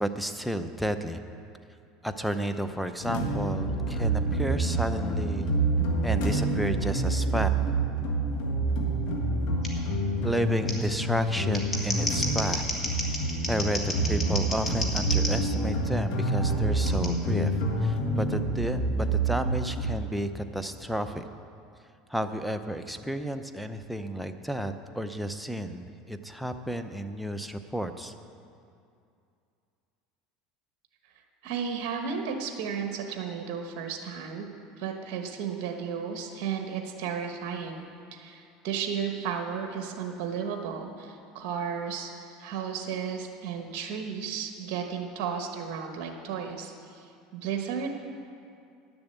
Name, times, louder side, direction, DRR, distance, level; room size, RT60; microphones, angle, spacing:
voice 1, 0.0-1.2 2.0-5.5 6.0-7.5 10.2-12.6 13.5-21.2 22.1-28.1, equal, ahead, 7 dB, 0.6 m, -32 dB
sound 1, 3.0-19.9, right 2 dB, 70° left, 1.7 m, -27 dB
Scissors, 9.6-9.7 10.7-10.8 11.4-15.3 16.9-17.1, left 2 dB, 20° left, 1.9 m, -32 dB
voice 2, 31.4-34.5 34.8-37.8 38.1-47.9, right 7 dB, 60° right, 4 dB, 1.2 m, -34 dB
10.0 x 7.0 x 8.1 m, 2.5 s
supercardioid pair, 115°, 0 cm